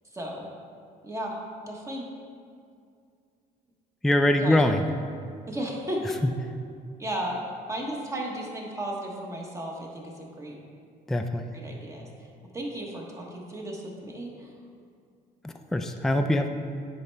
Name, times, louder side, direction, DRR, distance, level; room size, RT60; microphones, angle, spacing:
voice 1, 0.1-0.5 1.0-1.4 1.7-2.1 4.4-4.6 5.5-6.0 7.0-7.4 7.7-10.6 11.5-12.1 12.5-14.5, right 1 dB, 15° right, -1 dB, 1.1 m, -34 dB
voice 2, 4.0-4.8 6.2-6.3 11.1-11.5 15.4-16.5, left 1 dB, ahead, 5 dB, 0.3 m, -23 dB
9.4 x 4.3 x 3.3 m, 2.3 s
cardioid pair, 110°, 17 cm